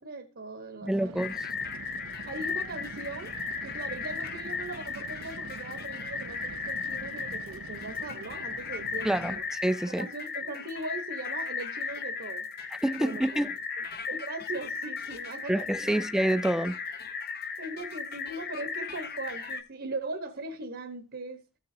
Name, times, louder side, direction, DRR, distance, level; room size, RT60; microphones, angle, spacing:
voice 1, 0.0-1.2 2.3-3.3 3.6-9.4 9.8-12.5 12.9-13.5 14.1-16.1 17.6-21.4, right 2 dB, 60° right, 1.1 m, -39 dB
voice 2, 0.8-1.5 9.0-10.1 12.8-13.6 15.5-16.8, right 1 dB, 5° right, 0.4 m, -27 dB
sound 1, 0.9-9.6, right 4 dB, 90° right, 0.6 m, -46 dB
sound 2, 1.2-19.6, left 5 dB, 50° left, 1.0 m, -36 dB
15.0 x 6.8 x 2.7 m
head